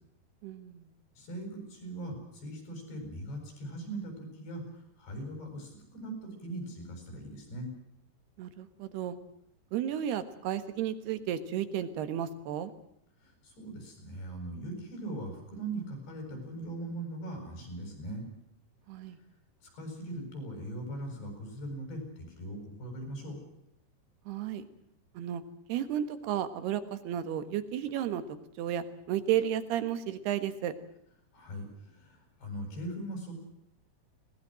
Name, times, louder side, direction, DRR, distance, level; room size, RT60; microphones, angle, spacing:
voice 1, 0.4-0.9 8.4-9.2 9.7-12.7 18.9-19.2 24.3-24.6 25.1-25.4 25.7-28.2 28.6-30.7, right 10 dB, 70° right, 11 dB, 3.3 m, -33 dB
voice 2, 1.2-4.6 5.0-7.7 13.2-18.2 19.6-23.4 31.3-33.4, right 1 dB, 70° left, 4 dB, 9.8 m, -40 dB
22.0 x 20.0 x 7.6 m, 0.76 s
omnidirectional pair, 5.0 m